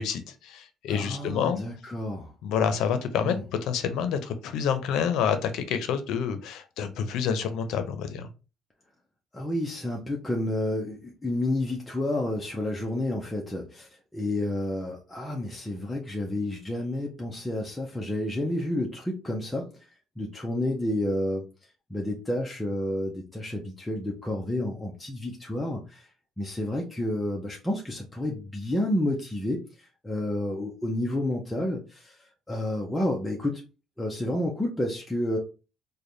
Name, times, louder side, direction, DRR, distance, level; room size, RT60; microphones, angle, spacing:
voice 1, 0.0-1.6 2.4-3.3 3.6-8.3, left 7 dB, 80° left, 9 dB, 0.6 m, -28 dB
voice 2, 0.9-2.3 3.2-3.4 9.3-19.7 20.2-21.4 21.9-26.1 26.4-33.6 34.0-35.4, left 1 dB, 10° left, -1 dB, 0.6 m, -30 dB
3.3 x 2.2 x 3.9 m, 0.32 s
cardioid pair, 115°, 0 cm